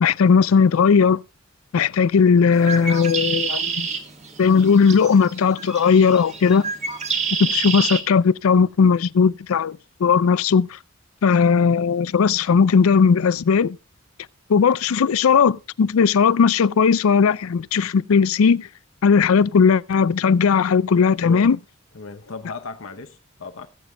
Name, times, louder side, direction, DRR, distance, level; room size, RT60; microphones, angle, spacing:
voice 1, 0.0-1.2 1.7-3.9 4.4-6.7 7.4-10.8 11.2-13.8 14.5-18.7 19.0-21.6, left 6 dB, 90° left, 0.4 m, -17 dB
Bird, 2.5-8.0, right 5 dB, 35° right, 1.5 m, -28 dB
voice 2, 21.2-21.5 21.9-23.7, left 3 dB, 70° left, 0.8 m, -36 dB
21.0 x 7.1 x 2.3 m
head